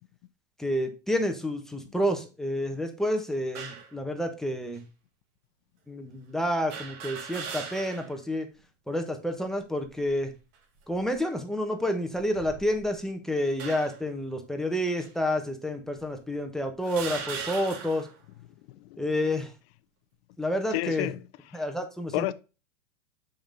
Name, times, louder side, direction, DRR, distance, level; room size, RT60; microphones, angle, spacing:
voice 1, 0.6-4.8 5.9-8.5 8.9-10.3 10.9-18.1 19.0-19.5 20.4-21.1 21.5-22.3, equal, ahead, 1.2 m, -29 dB
sound 1, 3.5-3.9 4.8-4.9 6.7-8.2 8.6-8.7 9.8-10.3 11.0-11.2 12.2-13.0 13.6-14.1 15.0-15.1 16.0-16.1 16.8-18.2, right 6 dB, 50° right, 2.1 m, -39 dB
voice 2, 18.4-19.0 20.7-21.6 22.1-22.3, left 17 dB, 55° left, 0.7 m, -33 dB
7.0 x 5.4 x 3.9 m
hypercardioid pair, 125°, 38 cm